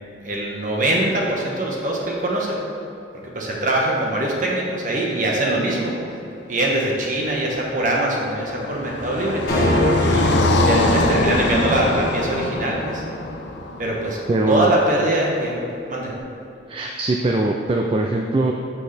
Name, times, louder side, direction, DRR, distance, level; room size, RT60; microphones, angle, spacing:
voice 1, 0.2-2.6 3.3-5.9 6.5-9.4 10.0-13.0 13.8-14.2 14.5-15.6 15.9-16.1, right 1 dB, 45° right, -2 dB, 1.2 m, -23 dB
Car passing by, 7.4-14.6, left 2 dB, 70° left, 0.6 m, -24 dB
sound 1, 9.5-13.9, left 1 dB, 50° left, 1.3 m, -24 dB
voice 2, 14.3-14.7 16.7-18.5, right 2 dB, 30° right, 1 dB, 0.3 m, -21 dB
7.6 x 6.1 x 3.4 m, 2.9 s
head